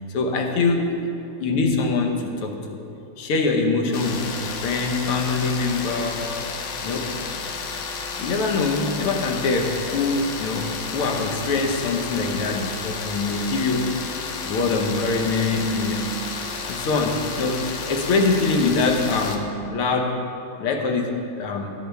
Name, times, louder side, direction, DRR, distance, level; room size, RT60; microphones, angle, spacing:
voice 1, 0.1-1.0 1.4-2.8 3.2-6.3 6.8-7.2 8.2-14.0 14.4-16.0 16.6-20.2 20.6-21.7, left 3 dB, 80° left, 3 dB, 2.0 m, -24 dB
sound 1, 3.9-19.4, left 5 dB, 65° left, 1.4 m, -32 dB
16.5 x 9.3 x 3.5 m, 2.8 s
omnidirectional pair, 2.4 m